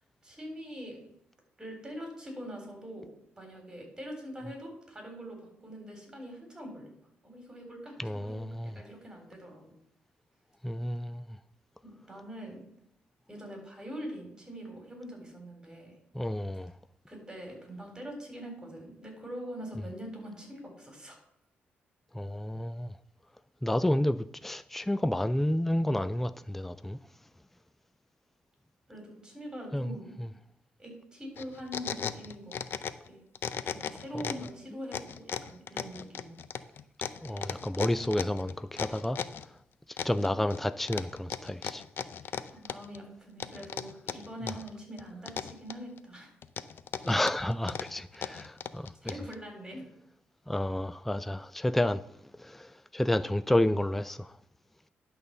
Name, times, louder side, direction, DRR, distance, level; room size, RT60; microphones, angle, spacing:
voice 1, 0.2-1.1 1.6-5.4 5.6-6.9 7.2-9.8 11.8-12.6 13.3-15.9 17.1-21.2 28.9-30.1 30.8-32.6 33.0-33.2 33.7-36.4 42.5-46.3 49.0-49.9, equal, 15° right, 3.8 m, -43 dB
voice 2, 8.0-8.7 10.6-11.2 16.1-16.7 22.1-22.9 23.6-24.2 24.4-27.0 29.7-29.9 33.7-33.8 34.1-34.3 37.2-39.2 40.0-41.8 47.0-49.1 50.5-52.0 52.4-54.3, left 1 dB, 5° left, 0.3 m, -30 dB
sound 1, 31.4-33.1 33.3-34.5 34.9-39.5 40.0-40.6 40.9-43.0 43.4-44.7 45.0-46.0 46.4-49.3, left 8 dB, 65° left, 0.5 m, -36 dB
11.0 x 4.1 x 6.7 m
cardioid pair, 90°, 4 cm